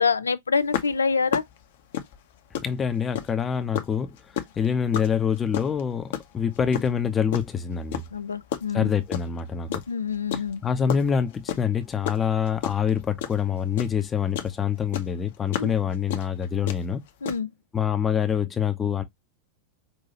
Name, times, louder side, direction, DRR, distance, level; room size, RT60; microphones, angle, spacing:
voice 1, 0.0-1.4 8.1-8.9 9.9-10.6 15.6-15.7 17.2-17.5, left 5 dB, 75° left, 0.4 m, -26 dB
sound 1, 0.7-3.4 3.7-7.5 7.9-9.4 9.7-14.6 14.9-17.4, left 10 dB, 55° left, 0.8 m, -31 dB
voice 2, 2.6-8.0 8.7-9.7 10.6-17.0 17.7-19.0, left 7 dB, 20° left, 0.7 m, -26 dB
5.5 x 2.7 x 2.8 m
figure-of-eight pair, 90°, 0 cm